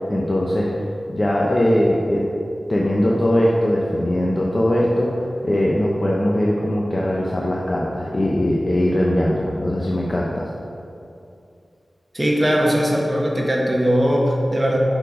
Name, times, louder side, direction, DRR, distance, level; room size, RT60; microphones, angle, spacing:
voice 1, 0.1-0.7 1.1-2.2 2.7-10.5, left 1 dB, 35° left, -4 dB, 0.8 m, -20 dB
voice 2, 12.1-14.8, equal, 25° right, -2 dB, 1.3 m, -19 dB
6.9 x 5.8 x 5.0 m, 2.6 s
wide cardioid pair, 85°, 0 cm